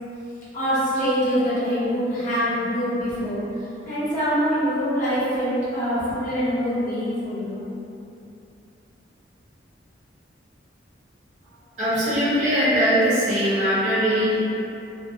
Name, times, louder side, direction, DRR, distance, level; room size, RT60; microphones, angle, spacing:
voice 1, 0.5-3.4 3.8-7.6, equal, 45° left, -12 dB, 0.9 m, -24 dB
voice 2, 11.8-14.4, equal, 40° right, -12 dB, 0.9 m, -21 dB
2.6 x 2.1 x 2.6 m, 2.8 s
head